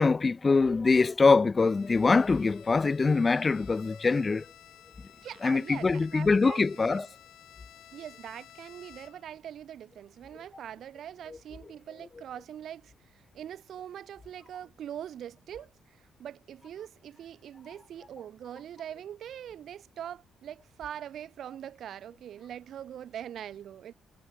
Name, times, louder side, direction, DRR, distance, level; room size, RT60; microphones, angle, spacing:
voice 1, 0.0-4.5 5.4-7.1 11.3-11.4, left 4 dB, 30° left, 0.4 m, -23 dB
Bowed string instrument, 1.6-9.4, left 13 dB, 80° left, 3.5 m, -55 dB
voice 2, 5.2-7.1 7.9-12.9 13.3-15.7 16.2-23.9, right 10 dB, 65° right, 2.7 m, -42 dB
cardioid pair, 90°, 0 cm